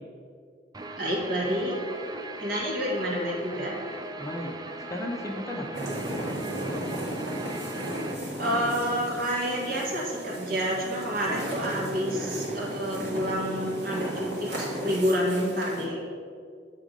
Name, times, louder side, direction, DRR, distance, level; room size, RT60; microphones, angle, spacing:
Guitar, 0.7-8.1, right 2 dB, 20° right, 0.4 m, -39 dB
voice 1, 1.0-1.7 2.4-3.9 8.4-16.0, equal, 60° right, -3 dB, 1.5 m, -29 dB
voice 2, 4.2-4.5 4.9-6.5, left 1 dB, 20° left, 1 dB, 0.6 m, -36 dB
sound 1, 5.7-15.9, right 1 dB, 80° right, 1.8 m, -35 dB
7.6 x 3.6 x 5.2 m, 2.2 s
head